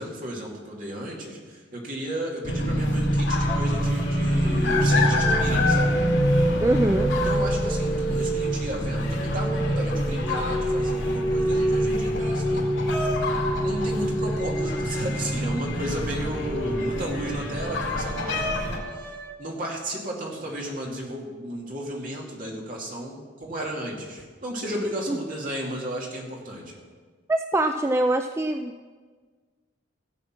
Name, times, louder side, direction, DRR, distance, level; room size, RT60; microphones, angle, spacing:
voice 1, 0.0-6.0 7.2-12.7 13.6-19.1 19.4-26.8, right 1 dB, 45° right, -2 dB, 2.5 m, -33 dB
sound 1, 2.4-18.8, left 1 dB, 75° left, 2.4 m, -26 dB
sound 2, 3.5-4.0 4.3-15.4 16.3-19.3, right 1 dB, 10° left, 1.0 m, -29 dB
voice 2, 6.6-7.1 25.1-25.2 27.3-28.9, right 2 dB, 15° right, 6 dB, 0.3 m, -24 dB
16.0 x 7.3 x 6.0 m, 1.5 s
head